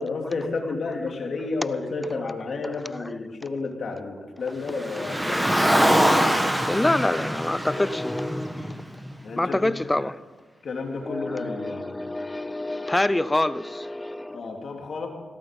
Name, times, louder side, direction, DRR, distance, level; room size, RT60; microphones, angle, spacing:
voice 1, 0.0-5.6 9.2-9.7 10.6-12.0 14.3-15.1, left 3 dB, 60° left, 3.0 m, -31 dB
Car, 4.7-9.1, equal, 10° right, 1.8 m, -23 dB
voice 2, 6.6-8.8 9.4-10.2 11.0-14.5, left 1 dB, 15° left, 0.5 m, -26 dB
17.0 x 13.0 x 5.3 m
cardioid pair, 70°, 0 cm